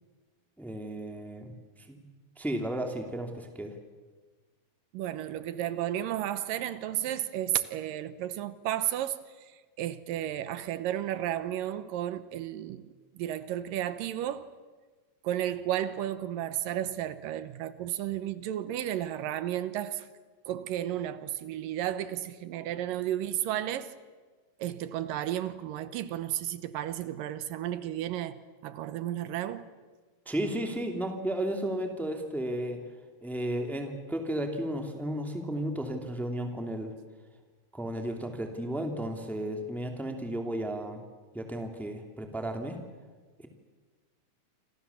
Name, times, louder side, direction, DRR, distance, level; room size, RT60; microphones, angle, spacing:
voice 1, 0.6-1.5 1.9-2.0 2.4-3.7 30.3-32.8 33.2-36.9 37.7-41.0 41.3-42.8, right 1 dB, ahead, 2.0 m, -33 dB
voice 2, 4.9-14.5 15.2-20.1 20.5-23.9 24.6-29.7, right 12 dB, 85° right, 2.7 m, -33 dB
28.0 x 26.0 x 7.1 m
omnidirectional pair, 3.9 m